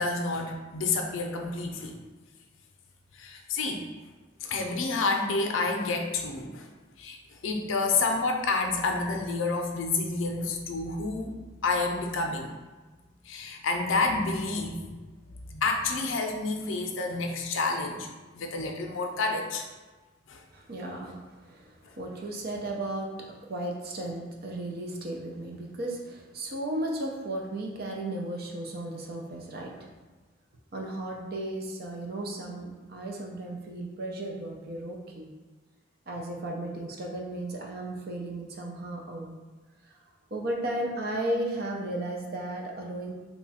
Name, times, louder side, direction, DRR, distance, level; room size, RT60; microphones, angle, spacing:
voice 1, 0.0-2.0 3.1-3.8 4.4-6.7 7.0-7.2 7.4-11.3 11.6-12.5 13.3-15.0 15.5-18.1 18.3-19.6 20.3-20.4 21.9-22.0, left 3 dB, 80° left, 3 dB, 0.5 m, -29 dB
voice 2, 20.5-29.9 30.7-35.3 36.1-39.3 40.3-43.1, right 1 dB, 55° right, 0 dB, 0.5 m, -35 dB
3.0 x 2.3 x 4.1 m, 1.2 s
head